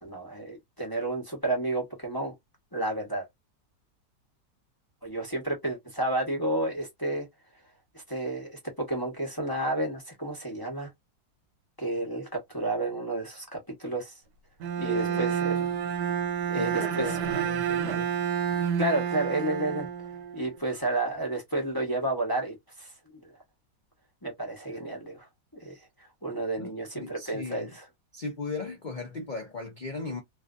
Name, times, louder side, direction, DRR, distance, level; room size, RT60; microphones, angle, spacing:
voice 1, 0.0-2.3 2.7-3.3 5.0-7.3 8.1-10.9 11.8-14.1 14.8-15.7 16.5-17.2 18.8-19.9 20.3-22.9 24.2-25.3 25.5-25.8 26.2-27.9, right 2 dB, 20° left, 0.7 m, -31 dB
Bowed string instrument, 14.6-20.6, right 8 dB, 75° right, 1.3 m, -29 dB
voice 2, 14.8-15.3 16.6-18.1 26.6-27.7 28.1-30.2, left 4 dB, 85° left, 0.4 m, -38 dB
3.2 x 2.5 x 2.4 m
omnidirectional pair, 2.0 m